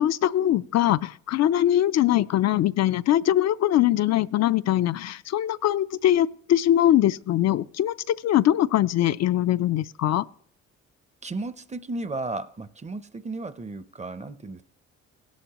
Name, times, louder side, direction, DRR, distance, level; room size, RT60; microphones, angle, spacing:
voice 1, 0.0-10.2, left 12 dB, 60° left, 0.4 m, -22 dB
voice 2, 11.2-14.6, right 2 dB, 25° right, 0.6 m, -34 dB
17.0 x 11.5 x 3.0 m
cardioid pair, 90°, 30 cm